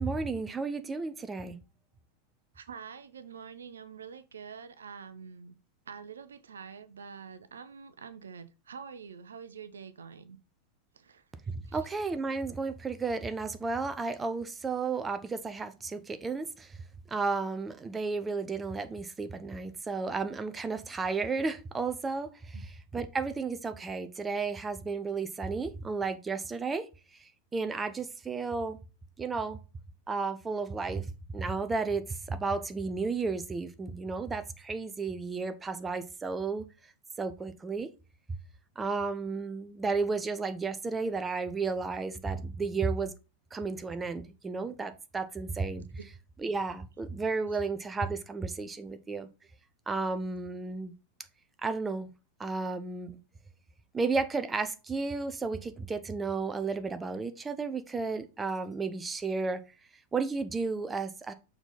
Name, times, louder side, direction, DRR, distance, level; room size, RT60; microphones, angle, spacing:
voice 1, 0.0-1.6 11.5-16.8 17.1-26.9 27.5-28.8 29.2-29.6 30.1-31.0 31.3-36.6 37.2-37.9 38.8-43.1 43.5-45.9 46.4-49.3 49.9-50.9 51.6-52.1 52.4-53.2 53.9-59.6 60.1-61.3, right 4 dB, 15° right, 0.7 m, -33 dB
voice 2, 2.5-5.5 5.9-10.4 10.9-11.2 11.6-11.9 22.5-22.6, right 6 dB, 70° right, 0.6 m, -46 dB
6.9 x 4.0 x 4.1 m
figure-of-eight pair, 90°, 0 cm